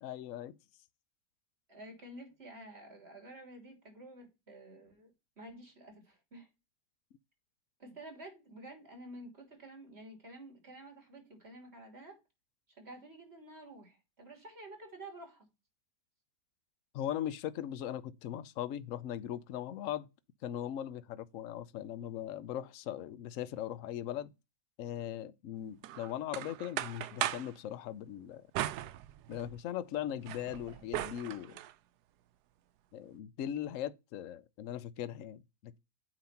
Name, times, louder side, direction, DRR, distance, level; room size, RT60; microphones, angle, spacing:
voice 1, 0.0-0.5 16.9-20.1 20.4-24.3 24.8-28.5 29.3-31.6 32.9-35.8, left 11 dB, 65° left, 0.9 m, -39 dB
voice 2, 1.7-6.5 7.8-12.2 12.8-15.5, right 1 dB, 40° right, 3.3 m, -50 dB
sound 1, 25.8-27.5 28.5-29.6 30.0-31.7, right 13 dB, 75° right, 1.1 m, -38 dB
8.8 x 3.1 x 5.7 m
omnidirectional pair, 1.8 m